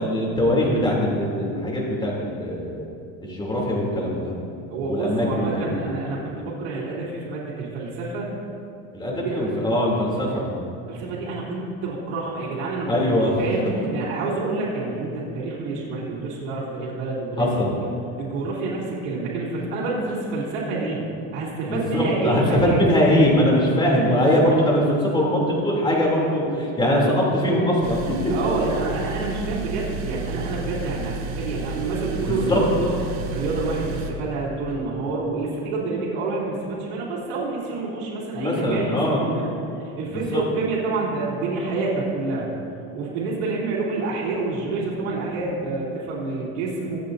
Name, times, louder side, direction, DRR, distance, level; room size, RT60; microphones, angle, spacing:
voice 1, 0.0-2.8 3.2-4.3 4.9-5.7 8.9-10.5 12.9-13.3 17.4-17.7 21.7-28.0 32.3-32.6 38.3-39.2 40.1-40.4, left 1 dB, 15° left, -3 dB, 3.0 m, -21 dB
voice 2, 4.7-8.3 9.2-9.5 10.9-12.9 13.2-17.4 18.2-21.1 21.3-22.8 28.3-32.9 33.3-39.0 39.3-39.5 39.8-42.5 42.9-47.0, right 3 dB, 85° right, -7 dB, 3.1 m, -28 dB
sound 1, 27.8-34.1, right 4 dB, 55° right, 1.3 m, -32 dB
24.0 x 8.2 x 2.7 m, 2.6 s
cardioid pair, 130°, 33 cm